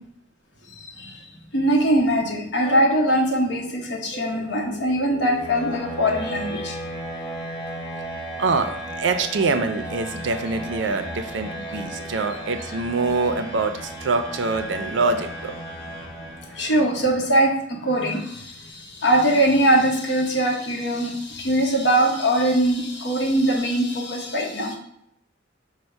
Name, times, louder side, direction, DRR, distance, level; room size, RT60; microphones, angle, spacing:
voice 1, 0.8-1.2 1.5-6.7 12.0-12.1 16.5-24.8, right 1 dB, 65° left, 0 dB, 0.9 m, -22 dB
sound 1, 4.1-17.0, right 1 dB, 45° left, 1.4 m, -35 dB
voice 2, 8.2-15.5, right 3 dB, 80° right, 8 dB, 0.5 m, -25 dB
5.2 x 2.1 x 4.4 m, 0.73 s
head